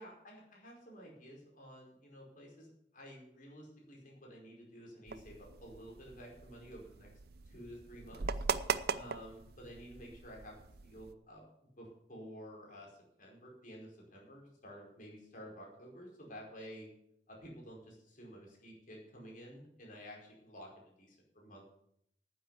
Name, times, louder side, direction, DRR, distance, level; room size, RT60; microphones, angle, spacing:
voice 1, 0.0-7.1 7.5-8.3 9.0-11.4 11.8-12.9 13.2-16.9 17.3-21.6, equal, 50° left, -1 dB, 4.8 m, -52 dB
sound 1, 5.1-11.1, right 5 dB, 60° right, 0.6 m, -40 dB
9.8 x 9.0 x 8.3 m, 0.72 s
head